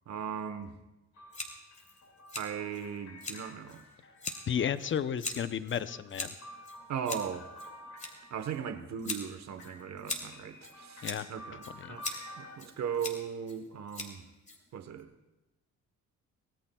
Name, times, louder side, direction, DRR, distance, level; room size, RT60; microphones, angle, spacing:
voice 1, 0.1-0.7 2.4-3.8 6.9-7.5 8.3-12.1 12.4-14.2 14.7-15.1, right 7 dB, 65° right, 8 dB, 1.2 m, -38 dB
sound 1, 1.1-4.9 5.6-8.7 9.6-12.6, left 1 dB, 60° left, 2.4 m, -51 dB
Scissors, 1.3-15.0, left 2 dB, 25° left, 2.9 m, -43 dB
voice 2, 4.5-6.4 11.0-11.3 11.7-12.0, left 8 dB, 40° left, 13 dB, 0.7 m, -33 dB
24.5 x 16.5 x 2.3 m, 1.0 s
cardioid pair, 90°, 30 cm